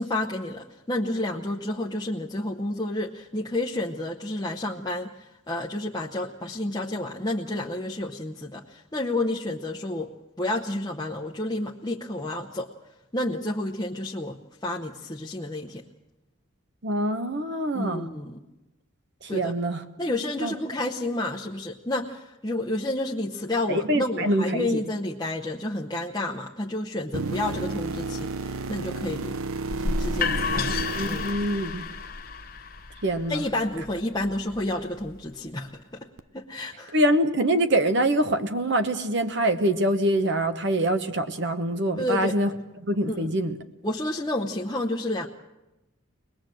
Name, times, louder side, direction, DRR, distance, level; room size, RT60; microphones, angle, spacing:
voice 1, 0.0-10.1 10.4-12.7 13.1-15.8 17.7-18.4 19.3-19.5 20.0-29.4 29.8-30.7 31.0-31.3 33.3-36.1 36.3-37.0 42.0-42.4 43.1-43.3 43.8-45.3, left 1 dB, 20° left, -1 dB, 0.8 m, -30 dB
voice 2, 16.8-18.1 19.2-19.8 20.4-20.5 23.7-24.8 30.7-31.9 33.0-33.4 36.9-42.5 42.9-43.6, right 1 dB, 55° right, 8 dB, 1.0 m, -25 dB
sound 1, 27.1-32.2 36.2-36.3, right 3 dB, 80° right, 0.8 m, -32 dB
sound 2, 29.7-35.5, left 4 dB, 40° left, 1.0 m, -32 dB
23.0 x 20.0 x 7.7 m, 0.99 s
head